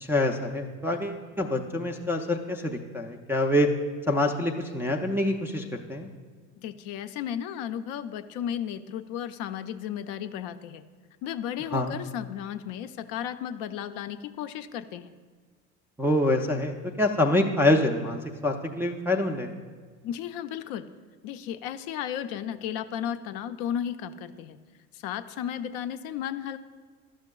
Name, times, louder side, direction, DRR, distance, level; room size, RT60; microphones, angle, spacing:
voice 1, 0.0-3.7 4.1-6.1 11.7-12.0 16.0-19.5, left 1 dB, 5° right, -1 dB, 0.4 m, -26 dB
voice 2, 6.6-10.8 11.2-15.1 20.0-20.9 21.2-24.6 24.9-26.6, left 9 dB, 55° left, 10 dB, 0.5 m, -34 dB
11.5 x 6.4 x 2.3 m, 1.5 s
hypercardioid pair, 75°, 42 cm